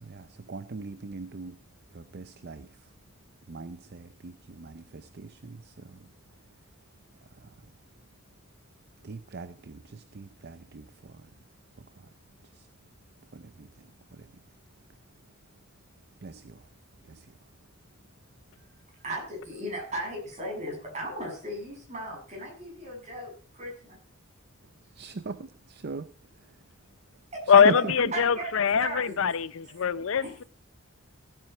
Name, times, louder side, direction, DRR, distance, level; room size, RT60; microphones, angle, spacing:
voice 1, 0.0-1.5 1.9-2.7 3.5-5.9 9.0-11.1 13.3-13.7 16.2-16.6 17.1-17.2 25.0-26.1 27.6-27.9, right 3 dB, 50° right, 13 dB, 0.6 m, -39 dB
voice 2, 19.0-24.0 27.3-27.4 27.7-27.8 28.1-28.5 28.8-29.1 30.2-30.3, right 1 dB, 35° right, -1 dB, 7.0 m, -36 dB
voice 3, 27.5-30.4, left 6 dB, 70° left, 17 dB, 0.5 m, -22 dB
16.5 x 9.0 x 4.5 m, 0.43 s
head